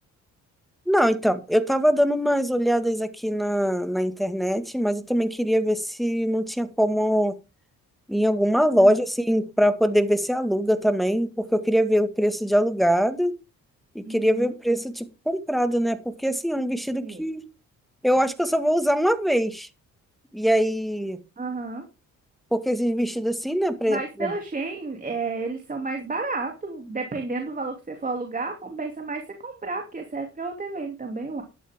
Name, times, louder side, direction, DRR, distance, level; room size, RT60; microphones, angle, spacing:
voice 1, 0.9-7.3 8.1-13.4 14.0-17.4 18.0-19.7 20.3-21.2 22.5-24.3, equal, ahead, 9 dB, 1.8 m, -23 dB
voice 2, 14.0-14.5 17.0-17.2 21.4-21.8 23.8-31.4, right 3 dB, 25° right, 4 dB, 2.8 m, -31 dB
12.0 x 11.0 x 3.6 m, 0.28 s
cardioid pair, 90°, 30 cm